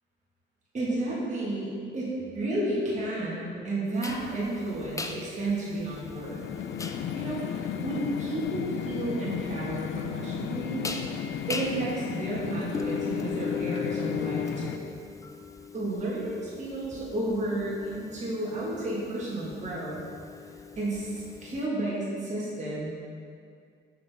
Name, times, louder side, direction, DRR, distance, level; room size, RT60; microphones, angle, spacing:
voice 1, 0.7-6.4 7.1-10.8 11.5-14.9 15.7-20.0 20.8-22.9, right 1 dB, 35° right, -6 dB, 1.6 m, -32 dB
sound 1, 4.0-21.6, left 5 dB, 15° left, 0.4 m, -39 dB
sound 2, 5.7-14.8, left 8 dB, 70° left, 0.4 m, -34 dB
6.6 x 5.5 x 3.5 m, 2.2 s
cardioid pair, 90°, 20 cm